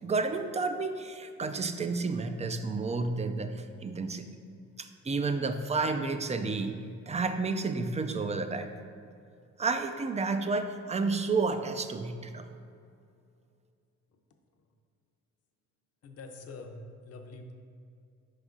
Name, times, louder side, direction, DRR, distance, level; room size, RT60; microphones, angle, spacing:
voice 1, 0.0-4.3 4.8-8.7 9.6-12.5, right 4 dB, 25° right, 8 dB, 0.4 m, -31 dB
voice 2, 16.0-17.5, left 2 dB, 55° left, 4 dB, 0.7 m, -45 dB
5.3 x 4.8 x 3.8 m, 2.4 s
cardioid pair, 90°, 30 cm